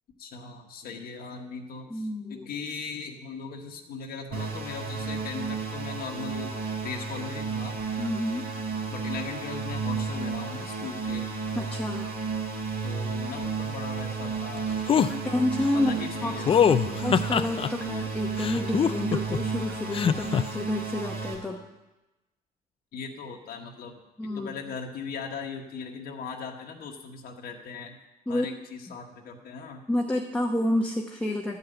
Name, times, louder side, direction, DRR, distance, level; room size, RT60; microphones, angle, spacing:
voice 1, 0.2-6.6 6.8-7.8 8.9-11.3 12.8-15.1 15.7-16.8 22.9-23.9 24.3-28.0 28.3-29.8, left 5 dB, 65° left, 2 dB, 1.3 m, -39 dB
voice 2, 1.9-2.5 8.0-8.5 11.5-12.1 14.9-21.6 24.2-24.6 28.3-28.5 29.9-31.6, left 1 dB, 10° left, 0 dB, 1.0 m, -29 dB
sound 1, 4.3-21.4, right 5 dB, 70° right, 3.5 m, -32 dB
sound 2, 14.9-15.1 16.5-17.7 18.4-19.4 19.9-20.4, left 8 dB, 35° left, 0.4 m, -22 dB
12.0 x 5.6 x 7.9 m, 1.0 s
cardioid pair, 110°, 17 cm